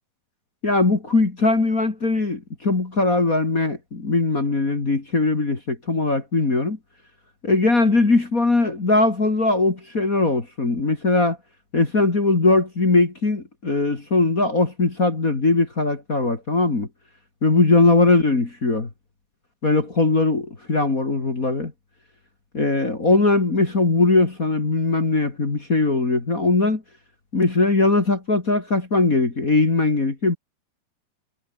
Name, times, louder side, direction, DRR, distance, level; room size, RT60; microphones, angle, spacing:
voice 1, 0.6-6.8 7.4-11.4 11.7-16.9 17.4-18.9 19.6-21.7 22.5-26.8 27.3-30.4, left 3 dB, 25° left, 2.8 m, -20 dB
omnidirectional pair, 3.8 m